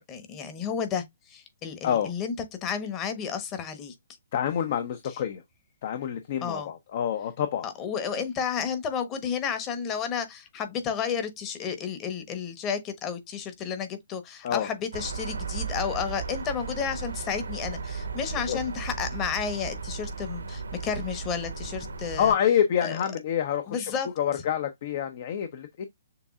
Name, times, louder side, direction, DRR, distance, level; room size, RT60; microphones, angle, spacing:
voice 1, 0.0-2.3 2.6-3.9 6.4-6.7 7.6-22.3 22.8-23.0 23.7-24.1, left 7 dB, 25° left, 1.1 m, -32 dB
voice 2, 4.3-5.4 5.8-7.6 14.4-14.7 18.5-18.6 22.2-23.9 24.2-25.9, left 9 dB, 50° left, 0.7 m, -27 dB
sound 1, 14.9-22.3, right 4 dB, 80° right, 1.0 m, -35 dB
6.8 x 2.7 x 2.4 m
hypercardioid pair, 135°, 0 cm